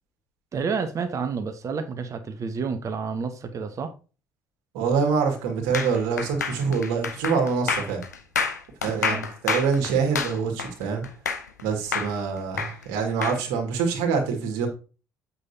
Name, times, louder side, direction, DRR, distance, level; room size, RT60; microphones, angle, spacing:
voice 1, 0.5-3.9 9.0-9.3, right 5 dB, 35° right, 1.0 m, -30 dB
voice 2, 4.7-8.0 8.8-9.2 9.4-11.1 11.6-14.7, right 5 dB, 65° right, 1.9 m, -25 dB
sound 1, 5.7-11.6 11.9-13.4, left 5 dB, 80° left, 0.7 m, -28 dB
8.1 x 5.6 x 2.7 m
figure-of-eight pair, 50°, 9 cm